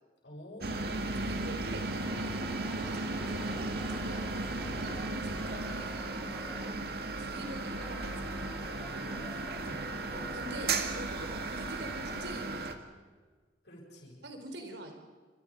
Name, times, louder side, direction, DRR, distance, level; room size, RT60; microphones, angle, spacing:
voice 1, 0.2-1.2 4.5-4.9 8.7-9.9 13.6-14.2, left 1 dB, 70° left, -5 dB, 7.9 m, -49 dB
sound 1, 0.6-12.7, right 2 dB, 60° right, 2.0 m, -35 dB
sound 2, 1.2-12.3, equal, ahead, 1.5 m, -49 dB
voice 2, 1.2-4.3 4.6-6.3 7.2-8.4 10.1-12.9 14.2-14.9, right 1 dB, 75° right, 5 dB, 4.1 m, -45 dB
28.0 x 26.0 x 5.4 m, 1.4 s
head